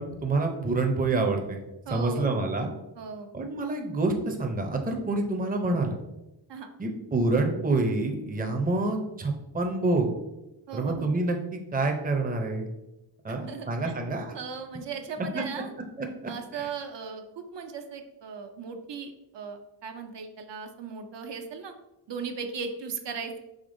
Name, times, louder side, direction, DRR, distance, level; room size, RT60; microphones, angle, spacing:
voice 1, 0.0-1.6 1.9-2.7 3.3-6.0 6.8-10.1 10.7-12.7 13.2-14.3 15.3-15.4 16.0-16.1 16.6-16.7, right 2 dB, 20° right, 3 dB, 0.5 m, -27 dB
voice 2, 1.9-2.3 3.0-3.3 6.5-6.7 10.7-11.1 13.5-13.9 14.3-15.7 16.3-21.7 22.1-23.4, right 5 dB, 75° right, 6 dB, 0.5 m, -37 dB
5.0 x 3.4 x 2.6 m, 0.96 s
wide cardioid pair, 105°, 44 cm